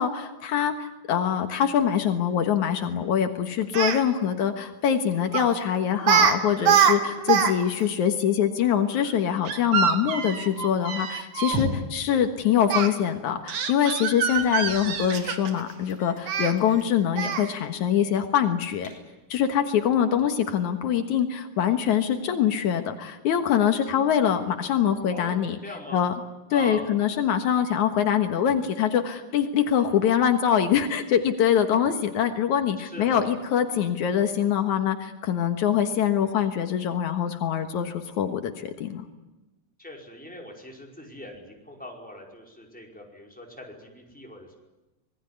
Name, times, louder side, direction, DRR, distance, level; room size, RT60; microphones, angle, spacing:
voice 1, 0.0-18.9 19.3-25.6 25.9-26.1 26.5-39.1, left 9 dB, 80° left, 7 dB, 2.8 m, -24 dB
Speech, 3.6-4.0 5.3-5.5 6.0-6.3 6.6-7.5 7.8-7.9 9.5-11.6 12.7-12.9 13.5-15.6 16.3-16.5 17.2-17.5, right 8 dB, 80° right, 3.3 m, -24 dB
sound 1, 11.4-12.0 12.7-12.9 13.3-13.4 14.3-15.4 15.9-16.3 16.6-16.9 17.3-17.6 18.0-18.1 18.5-19.3, left 1 dB, 40° left, 6.6 m, -36 dB
voice 2, 25.1-26.0 26.5-26.9 32.8-33.3 39.8-44.6, left 1 dB, 5° left, 0 dB, 5.0 m, -41 dB
26.0 x 20.0 x 9.9 m, 1.1 s
omnidirectional pair, 3.4 m